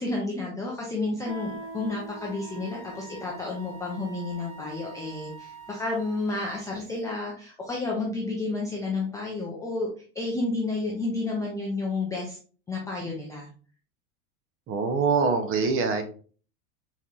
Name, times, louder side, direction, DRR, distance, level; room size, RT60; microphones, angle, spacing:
voice 1, 0.0-9.9 10.1-12.4 12.7-13.5, left 3 dB, 10° left, -3 dB, 0.3 m, -31 dB
Guitar, 1.3-6.7, right 2 dB, 75° right, 1.7 m, -45 dB
Wind instrument woodwind instrument, 2.1-6.3, right 5 dB, 40° left, 1.1 m, -46 dB
voice 2, 14.7-16.0, right 5 dB, 30° right, 8 dB, 0.6 m, -24 dB
4.2 x 3.8 x 2.4 m, 0.40 s
supercardioid pair, 125°, 45 cm